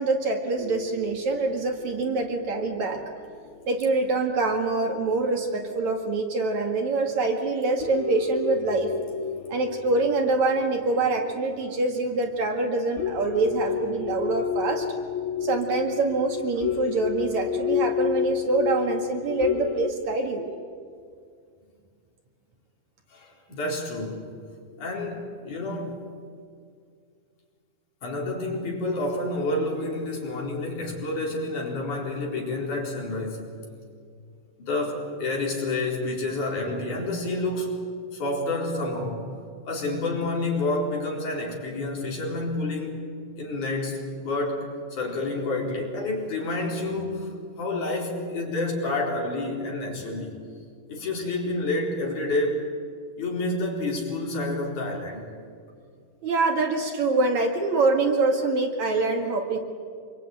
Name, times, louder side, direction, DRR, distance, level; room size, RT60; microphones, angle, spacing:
voice 1, 0.0-3.0 3.7-9.0 9.5-14.9 15.4-20.5 56.2-59.6, right 3 dB, 55° right, 3 dB, 3.0 m, -25 dB
sound 1, 0.6-4.5 5.0-5.1 6.1-6.2 6.7-6.8 7.3-7.5 7.8-19.9, left 8 dB, 85° left, 3.0 m, -31 dB
voice 2, 23.1-24.3 24.8-26.0 28.0-33.5 34.6-37.8 38.1-39.3 39.7-43.0 43.4-47.3 47.6-50.4 50.9-52.7 53.2-55.3, left 2 dB, 55° left, -1 dB, 5.7 m, -29 dB
26.5 x 23.5 x 9.2 m, 2.2 s
omnidirectional pair, 4.2 m